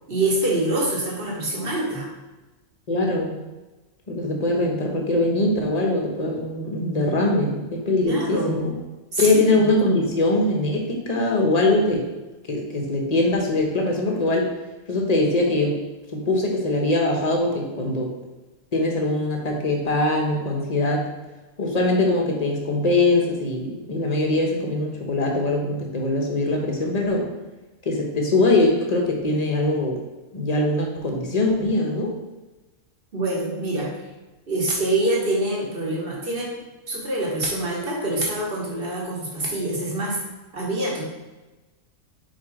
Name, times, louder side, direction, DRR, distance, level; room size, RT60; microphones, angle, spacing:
voice 1, 0.1-2.1 8.0-8.7 9.1-9.7 33.1-34.0 34.5-36.6 36.9-40.2 40.5-41.0, right 1 dB, 45° right, -3 dB, 1.8 m, -25 dB
voice 2, 2.9-3.3 4.1-8.7 9.2-12.1 12.5-14.5 14.9-15.8 16.1-18.1 18.7-21.1 21.6-27.3 27.8-30.0 30.3-32.1, left 2 dB, 30° left, 0 dB, 1.2 m, -22 dB
5.0 x 4.8 x 4.9 m, 1.1 s
omnidirectional pair, 1.3 m